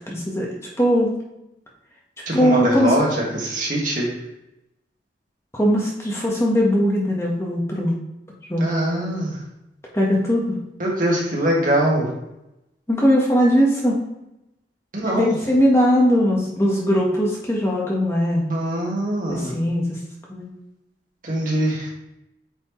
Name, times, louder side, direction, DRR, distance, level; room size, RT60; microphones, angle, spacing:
voice 1, 0.1-0.5 0.8-1.1 2.3-2.9 5.5-8.0 8.5-8.7 9.9-10.5 12.9-14.0 15.0-18.5 19.3-20.0 20.3-20.5, equal, 15° left, -3 dB, 1.2 m, -20 dB
voice 2, 2.3-4.1 8.6-9.4 10.8-12.1 14.9-15.4 18.5-19.6 21.2-21.9, right 1 dB, 45° right, -3 dB, 1.9 m, -22 dB
8.7 x 4.4 x 3.1 m, 0.89 s
head